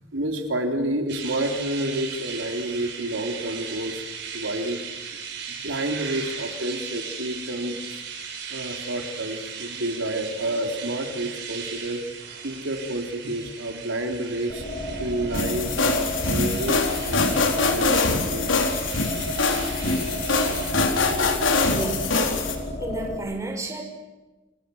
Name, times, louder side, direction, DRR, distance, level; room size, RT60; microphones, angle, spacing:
voice 1, 0.1-4.1 4.3-4.8 5.5-8.0 8.5-12.0 12.4-14.6 15.0-18.7, right 1 dB, 85° right, 4 dB, 3.6 m, -29 dB
sound 1, 1.1-20.7, right 6 dB, 60° right, 6.8 m, -38 dB
sound 2, 14.5-23.2, equal, 50° left, 5.0 m, -32 dB
sound 3, 15.3-22.5, left 3 dB, 80° left, 4.1 m, -24 dB
voice 2, 21.7-22.1 22.8-23.8, right 1 dB, 15° right, 2 dB, 5.8 m, -31 dB
29.0 x 28.0 x 7.2 m, 1.2 s
head